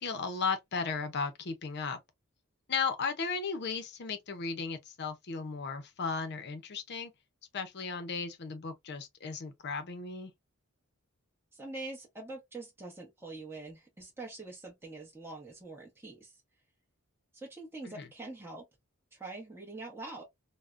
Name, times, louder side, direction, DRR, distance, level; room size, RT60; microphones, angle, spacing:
voice 1, 0.0-2.0 2.7-7.1 7.5-10.3 17.8-18.1, left 5 dB, 50° left, 0.6 m, -35 dB
voice 2, 11.5-16.4 17.3-18.6 19.1-20.2, right 2 dB, 10° right, 0.9 m, -44 dB
3.5 x 2.1 x 2.5 m
head